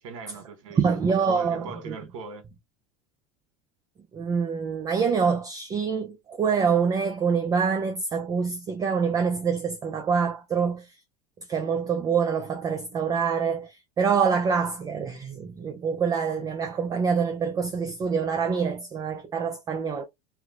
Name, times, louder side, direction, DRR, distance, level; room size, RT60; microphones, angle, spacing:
voice 1, 0.0-1.0 1.2-2.4, right 4 dB, 85° right, 1.3 m, -40 dB
voice 2, 0.8-2.0 4.1-10.9 11.5-20.1, right 6 dB, 20° right, 0.4 m, -26 dB
3.3 x 2.0 x 3.6 m
supercardioid pair, 130°, 16 cm